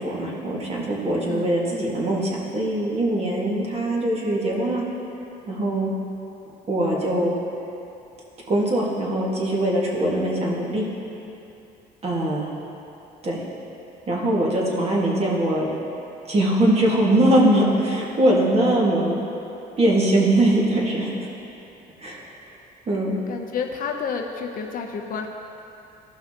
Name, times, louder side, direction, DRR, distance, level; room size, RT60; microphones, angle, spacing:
voice 1, 0.0-4.8 5.5-5.9 6.7-7.3 8.5-10.9 12.0-12.5 13.2-13.4 14.1-15.7 16.3-19.2 19.8-21.1 22.0-22.3 22.9-23.2, right 1 dB, 35° right, -4 dB, 1.8 m, -21 dB
voice 2, 23.3-25.3, left 6 dB, 55° left, 3 dB, 0.7 m, -30 dB
14.0 x 5.8 x 2.9 m, 2.8 s
cardioid pair, 110°, 17 cm